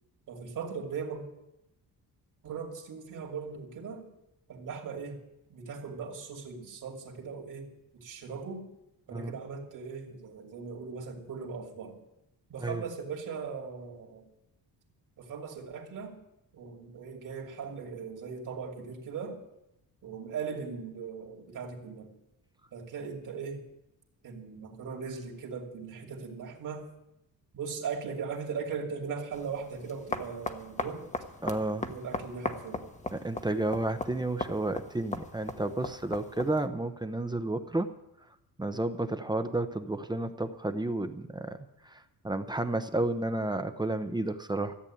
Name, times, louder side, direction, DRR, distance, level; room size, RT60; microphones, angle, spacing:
voice 1, 0.3-1.2 2.4-4.1 4.5-5.2 5.5-8.7 9.1-12.0 12.5-14.3 15.2-16.2 16.5-19.4 20.0-22.1 22.7-23.7 24.2-26.9 27.5-31.1 31.8-32.9, right 5 dB, 50° right, -1 dB, 2.7 m, -39 dB
sound 1, 29.3-36.7, left 2 dB, 20° left, 1.1 m, -39 dB
voice 2, 31.4-31.9 33.1-37.9 38.6-41.6 41.9-42.0 42.2-44.7, right 2 dB, 10° right, 8 dB, 0.8 m, -31 dB
14.0 x 8.3 x 8.7 m, 0.87 s
cardioid pair, 125°, 39 cm